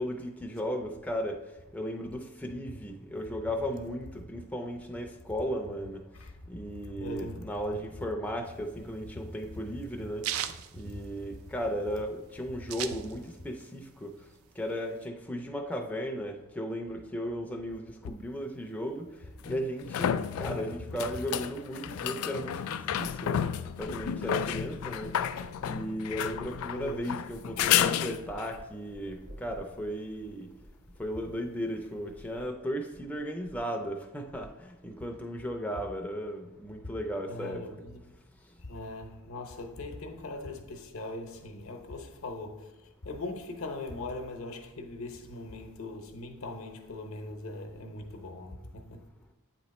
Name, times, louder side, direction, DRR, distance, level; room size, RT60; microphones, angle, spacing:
voice 1, 0.0-1.4 1.7-6.0 6.5-10.3 10.7-14.1 14.6-19.1 19.5-23.4 23.8-25.1 25.6-30.5 31.0-37.6, equal, 5° left, 0.4 m, -35 dB
voice 2, 7.0-7.5 10.8-11.0 26.7-27.1 37.3-38.1 38.6-42.7 43.0-49.1, left 2 dB, 70° left, 0.8 m, -40 dB
sound 1, 8.5-11.7 12.0-12.1 12.3-13.5 13.9-15.0, right 10 dB, 80° right, 0.4 m, -37 dB
sound 2, 18.0-18.1 19.4-28.6 32.0-32.1, left 9 dB, 85° left, 0.3 m, -31 dB
sound 3, 27.2-32.6 32.9-33.7 34.0-34.9 35.1-35.7, equal, 60° right, 1.1 m, -52 dB
8.5 x 3.0 x 4.1 m
head